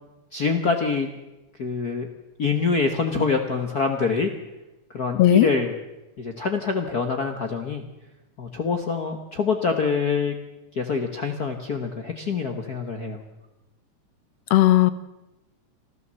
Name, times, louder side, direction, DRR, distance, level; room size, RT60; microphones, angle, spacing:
voice 1, 0.3-1.1 1.6-2.1 2.4-4.3 4.9-5.7 6.2-7.8 8.4-10.3 10.7-13.2, left 4 dB, 50° left, 5 dB, 1.2 m, -25 dB
voice 2, 5.1-5.5 14.5-14.9, left 14 dB, 70° left, 15 dB, 1.6 m, -16 dB
26.0 x 14.0 x 7.5 m, 1.0 s
omnidirectional pair, 3.4 m